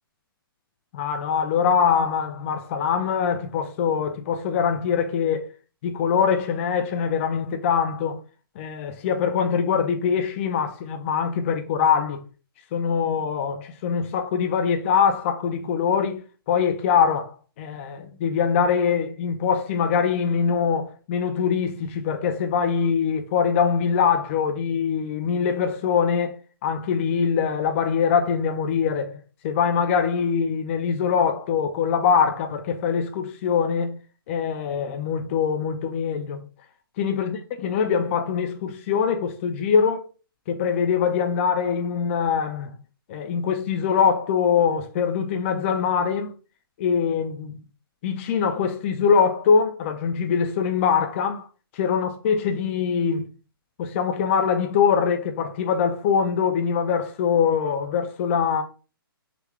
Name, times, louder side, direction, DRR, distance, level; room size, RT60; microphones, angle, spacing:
voice 1, 0.9-5.5 5.8-8.2 8.6-12.2 12.7-16.2 16.5-29.2 29.4-34.0 34.3-36.4 37.0-40.1 40.5-42.7 43.1-46.3 46.8-47.6 48.0-51.4 51.7-53.3 53.8-58.6, left 6 dB, 30° left, 0.4 m, -23 dB
3.6 x 2.2 x 3.2 m
hypercardioid pair, 145°, 12 cm